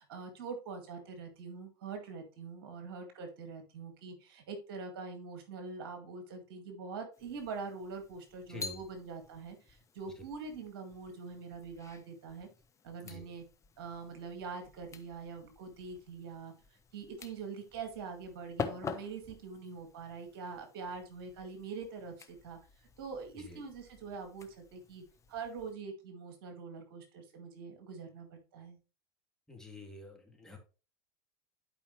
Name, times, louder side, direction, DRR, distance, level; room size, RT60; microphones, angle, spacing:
voice 1, 0.0-12.5 12.8-13.4 13.8-16.5 16.9-22.6 23.0-25.0 25.3-28.8, right 4 dB, 65° right, 5 dB, 2.0 m, -44 dB
sound 1, 7.1-25.7, left 5 dB, 25° left, 1.1 m, -48 dB
voice 2, 8.5-8.8 13.0-13.3 23.3-23.6 29.5-30.6, left 2 dB, 5° left, 0 dB, 2.7 m, -48 dB
11.5 x 5.1 x 3.2 m, 0.33 s
figure-of-eight pair, 85°, 13 cm